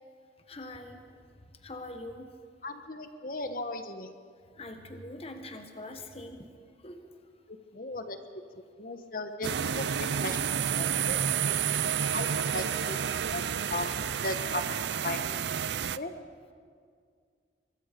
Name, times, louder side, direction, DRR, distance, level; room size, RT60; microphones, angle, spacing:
voice 1, 0.5-1.2 1.6-2.3 4.6-6.5 6.8-7.0 10.8-11.0, left 1 dB, 35° left, 6 dB, 1.4 m, -43 dB
voice 2, 2.6-4.1 7.5-8.2 8.8-10.4 10.8-11.2 11.5-11.6 12.1-12.3 12.5-13.0 13.3-13.4 13.7-13.9 14.2-14.6 15.0-15.2 15.9-16.1, left 2 dB, 50° left, 8 dB, 1.3 m, -36 dB
sound 1, 9.4-16.0, right 8 dB, 75° right, 0.5 m, -30 dB
23.5 x 22.0 x 5.2 m, 2.1 s
head